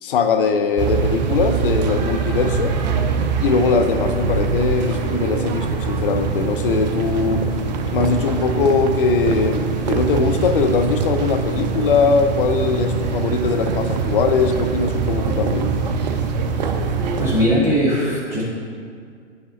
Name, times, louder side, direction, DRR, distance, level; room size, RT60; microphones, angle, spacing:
voice 1, 0.0-2.8 3.4-7.5 7.9-15.7, left 4 dB, 50° left, 7 dB, 0.6 m, -20 dB
sound 1, 0.8-17.4, right 5 dB, 35° right, 0.5 m, -23 dB
voice 2, 17.2-18.4, equal, 5° right, -9 dB, 2.0 m, -19 dB
9.5 x 6.4 x 2.8 m, 2.1 s
figure-of-eight pair, 120°, 36 cm